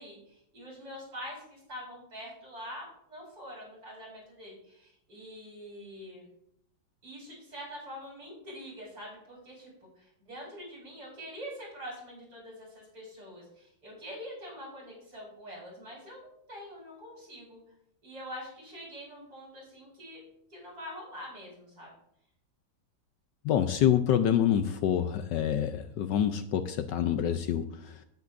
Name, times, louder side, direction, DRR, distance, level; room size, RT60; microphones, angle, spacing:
voice 1, 0.0-6.3 7.0-17.6 18.0-20.2 20.5-21.9, equal, 50° right, -4 dB, 5.6 m, -45 dB
voice 2, 23.4-28.0, left 10 dB, 70° left, 9 dB, 1.2 m, -27 dB
17.5 x 9.3 x 2.6 m, 0.75 s
omnidirectional pair, 2.1 m